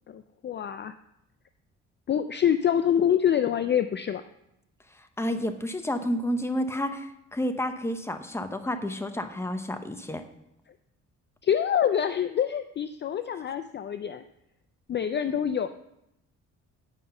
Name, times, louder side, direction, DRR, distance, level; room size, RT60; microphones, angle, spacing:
voice 1, 0.1-1.0 2.1-4.2 11.4-14.2 14.9-15.7, left 9 dB, 35° left, 10 dB, 0.4 m, -26 dB
voice 2, 5.0-10.2, equal, 10° left, 8 dB, 0.8 m, -30 dB
9.7 x 5.4 x 5.6 m, 0.84 s
cardioid pair, 90°, 30 cm